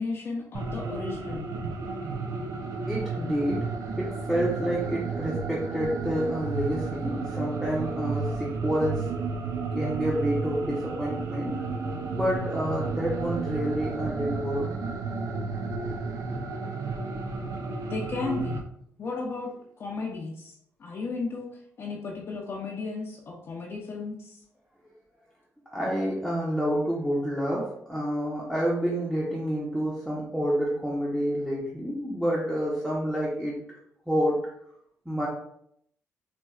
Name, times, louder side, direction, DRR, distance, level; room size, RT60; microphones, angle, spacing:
voice 1, 0.0-1.4 17.9-18.6 19.0-19.5 19.8-21.5 21.8-24.4, left 3 dB, 45° left, -2 dB, 0.5 m, -34 dB
sound 1, 0.5-18.6, right 4 dB, 65° right, 0.5 m, -32 dB
voice 2, 2.9-3.7 4.0-9.0 9.7-11.6 12.1-14.7 25.7-33.6 34.1-34.5 35.1-35.3, equal, ahead, -6 dB, 0.7 m, -28 dB
4.2 x 2.2 x 2.3 m, 0.70 s
cardioid pair, 90°, 6 cm